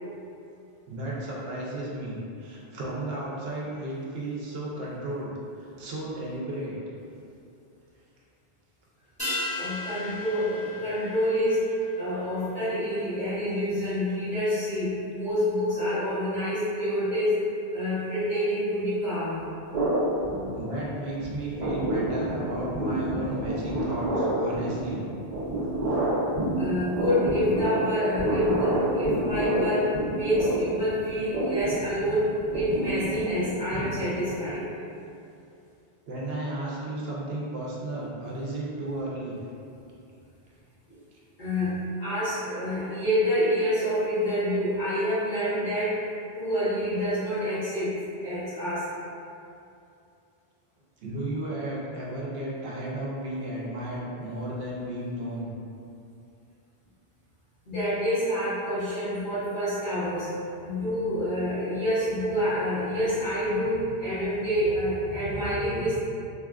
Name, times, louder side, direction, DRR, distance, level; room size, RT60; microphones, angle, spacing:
voice 1, 0.9-6.7 20.5-25.0 25.9-26.0 36.1-39.4 51.0-55.5, right 1 dB, 75° right, -5 dB, 0.8 m, -34 dB
sound 1, 9.2-13.9 14.2-14.3, left 2 dB, 5° left, 1.2 m, -37 dB
voice 2, 9.5-17.3 17.7-19.5 25.9-34.7 40.9-41.0 41.4-46.0 46.3-48.9 57.7-60.3 60.6-66.0, equal, 55° left, -16 dB, 1.0 m, -27 dB
sound 2, 19.7-21.0 21.2-34.4, right 1 dB, 45° right, 0.6 m, -29 dB
2.7 x 2.3 x 2.3 m, 2.6 s
omnidirectional pair, 1.1 m